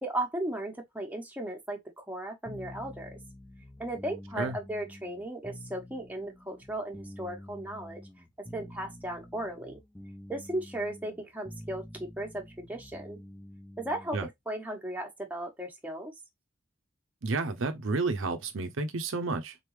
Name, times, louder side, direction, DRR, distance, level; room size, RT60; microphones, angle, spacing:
voice 1, 0.0-3.1 3.8-8.0 8.5-9.8 10.3-12.4 12.7-13.2 13.8-16.1, right 1 dB, 10° right, 1.2 m, -36 dB
sound 1, 2.4-14.3, left 1 dB, 10° left, 0.8 m, -48 dB
voice 2, 17.2-19.6, right 3 dB, 70° right, 0.7 m, -31 dB
4.0 x 3.4 x 3.2 m
head